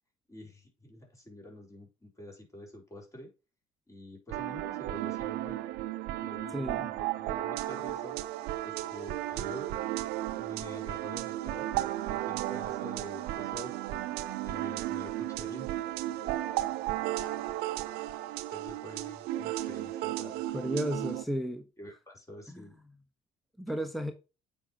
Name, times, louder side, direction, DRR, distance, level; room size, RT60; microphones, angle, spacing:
voice 1, 0.3-3.3 3.9-5.6 6.2-8.2 8.6-9.7 10.4-11.7 12.1-14.0 14.4-15.7 16.2-16.3 17.4-17.5 18.5-20.8 21.8-22.8 23.7-23.8, left 1 dB, 20° left, 4.1 m, -47 dB
sound 1, 4.3-21.2, right 14 dB, 65° right, 0.6 m, -34 dB
voice 2, 6.5-6.9 20.5-21.7 22.5-22.6 23.6-24.1, equal, ahead, 1.1 m, -33 dB
8.4 x 5.2 x 2.9 m
hypercardioid pair, 55°, 17 cm